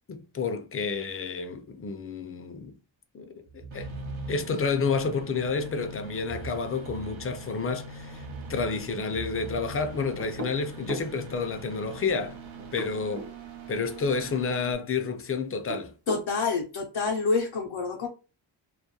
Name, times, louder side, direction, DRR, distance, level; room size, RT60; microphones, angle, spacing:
voice 1, 0.1-2.7 3.1-3.9 4.3-12.4 12.7-13.3 13.7-15.9, left 4 dB, 30° left, 0.4 m, -30 dB
sound 1, 3.5-4.7 6.1-7.5 8.0-10.6, right 4 dB, 55° right, 1.0 m, -42 dB
sound 2, 3.7-14.7, right 2 dB, 85° right, 0.7 m, -43 dB
sound 3, 10.2-11.1 12.6-13.4 15.5-16.3, right 1 dB, 35° right, 0.5 m, -38 dB
voice 2, 16.1-18.1, left 4 dB, 90° left, 0.6 m, -27 dB
2.3 x 2.2 x 2.7 m
wide cardioid pair, 95°, 45 cm